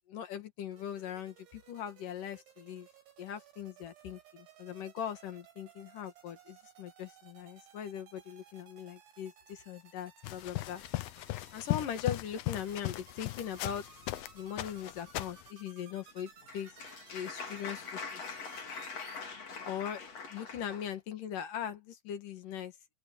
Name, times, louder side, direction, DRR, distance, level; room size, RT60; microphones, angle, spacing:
voice 1, 0.1-2.9 3.2-10.8 11.5-13.8 14.3-16.7 17.1-18.4 19.6-20.0 20.3-22.7, left 9 dB, 55° left, 3.0 m, -40 dB
sound 1, 0.7-19.3, right 7 dB, 80° right, 6.8 m, -59 dB
sound 2, 10.2-14.3 14.6-15.5, left 18 dB, 80° left, 2.1 m, -37 dB
Applause, 16.1-20.9, left 5 dB, 40° left, 4.0 m, -43 dB
open air
omnidirectional pair, 5.2 m